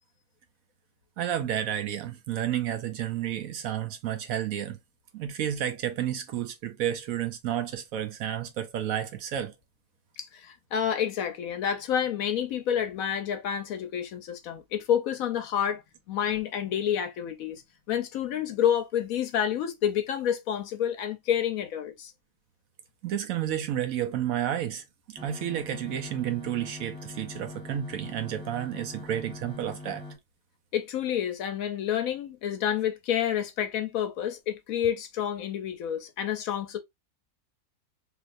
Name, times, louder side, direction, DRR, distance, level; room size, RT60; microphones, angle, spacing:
voice 1, 1.2-4.8 5.1-9.5 23.0-30.0, right 10 dB, 70° right, 0.9 m, -31 dB
voice 2, 10.2-15.8 16.1-17.6 17.9-22.1 30.7-36.8, left 9 dB, 70° left, 0.9 m, -29 dB
sound 1, 25.2-30.2, left 2 dB, 5° right, 1.1 m, -43 dB
3.3 x 2.8 x 2.4 m
omnidirectional pair, 1.7 m